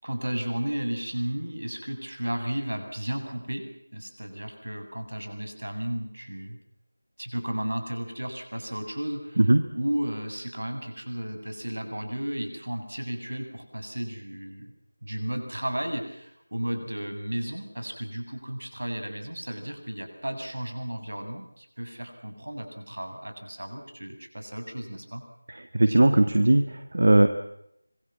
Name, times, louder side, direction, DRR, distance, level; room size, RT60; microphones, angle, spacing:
voice 1, 0.0-3.7 3.9-6.6 7.2-9.4 9.7-14.7 15.0-25.2, right 1 dB, 75° right, 6 dB, 7.6 m, -33 dB
voice 2, 25.5-27.3, right 1 dB, 55° right, 8 dB, 1.8 m, -19 dB
26.0 x 23.5 x 7.6 m, 0.79 s
figure-of-eight pair, 170°, 0 cm